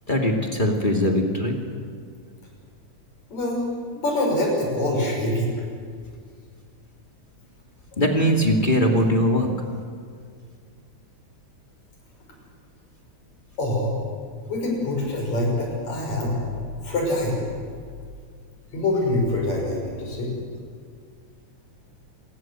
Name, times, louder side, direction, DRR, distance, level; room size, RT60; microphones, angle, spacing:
voice 1, 0.1-1.6 8.0-9.5, equal, 15° left, 1 dB, 2.4 m, -21 dB
voice 2, 3.3-3.6 4.0-5.6 13.6-14.0 14.5-16.3 16.8-17.4 18.7-20.3, left 1 dB, 70° left, 0 dB, 7.5 m, -24 dB
27.5 x 19.5 x 7.7 m, 2.1 s
omnidirectional pair, 3.3 m